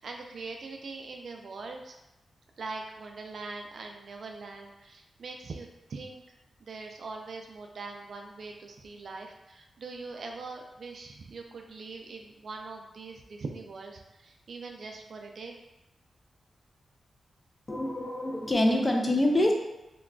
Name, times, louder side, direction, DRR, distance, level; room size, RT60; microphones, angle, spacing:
voice 1, 0.0-1.9 2.6-6.2 6.6-15.5, right 3 dB, 65° right, 3 dB, 0.3 m, -42 dB
voice 2, 17.7-19.5, left 1 dB, 25° left, 1 dB, 0.4 m, -25 dB
3.6 x 2.2 x 2.2 m, 0.97 s
wide cardioid pair, 100°, 0 cm